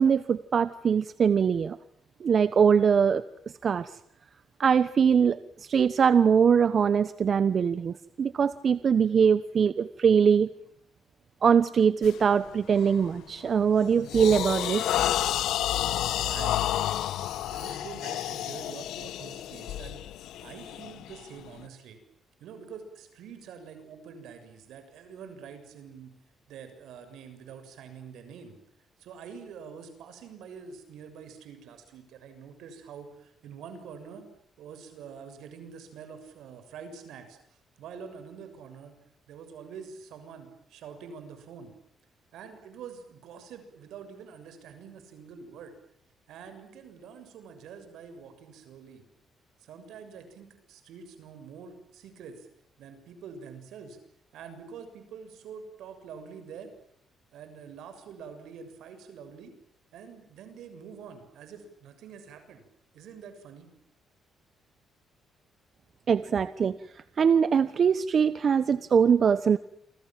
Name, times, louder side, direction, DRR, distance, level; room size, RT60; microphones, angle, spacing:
voice 1, 0.0-1.8 2.2-3.2 3.6-3.9 4.6-10.5 11.4-14.9 66.1-66.8 67.2-69.6, right 7 dB, 50° right, 13 dB, 1.1 m, -22 dB
sound 1, 12.0-12.3 12.8-13.1 13.5-21.6, left 12 dB, 85° left, 1.2 m, -30 dB
voice 2, 16.2-16.9 17.4-20.0 20.4-22.0 22.4-26.1 26.5-28.6 29.0-34.3 34.6-38.9 39.3-41.7 42.3-45.7 46.3-49.0 49.6-52.5 52.8-54.0 54.3-56.7 57.3-59.5 59.9-62.6 62.9-63.7, right 6 dB, 80° right, 9 dB, 6.8 m, -46 dB
29.0 x 26.0 x 7.6 m, 0.68 s
cardioid pair, 90°, 0 cm